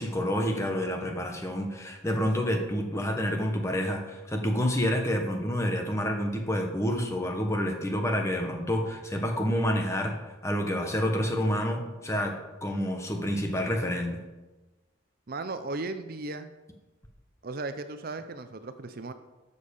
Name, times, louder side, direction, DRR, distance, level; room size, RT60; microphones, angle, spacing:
voice 1, 0.0-10.1 10.4-12.4 12.6-14.2, equal, 15° left, 3 dB, 1.3 m, -28 dB
voice 2, 15.3-16.5 17.4-19.1, right 3 dB, 50° right, 10 dB, 0.5 m, -36 dB
12.0 x 6.9 x 5.3 m, 1.1 s
head